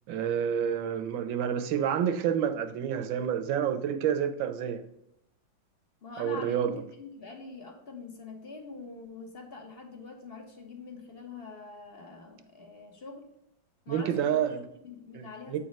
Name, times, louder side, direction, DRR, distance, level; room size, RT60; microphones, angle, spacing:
voice 1, 0.1-4.8 6.2-6.7 13.9-14.6 15.1-15.6, right 8 dB, 75° right, 1.4 m, -29 dB
voice 2, 6.0-13.3 13.8-15.6, left 4 dB, 40° left, 0.9 m, -44 dB
8.3 x 4.1 x 5.2 m
omnidirectional pair, 2.2 m